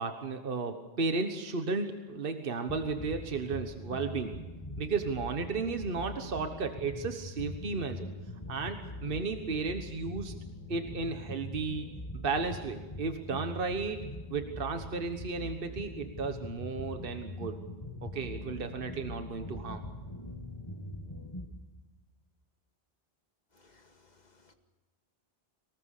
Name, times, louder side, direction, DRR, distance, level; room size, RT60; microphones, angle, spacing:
voice 1, 0.0-4.4 4.8-8.1 8.5-10.3 10.7-11.9 12.2-14.0 14.3-17.6 18.0-19.8, right 4 dB, 60° right, 7 dB, 1.5 m, -34 dB
sound 1, 2.7-21.5, left 1 dB, 25° left, 2.1 m, -42 dB
voice 2, 23.5-24.5, left 3 dB, 40° left, 5 dB, 2.2 m, -63 dB
24.5 x 19.5 x 6.6 m, 1.2 s
omnidirectional pair, 1.1 m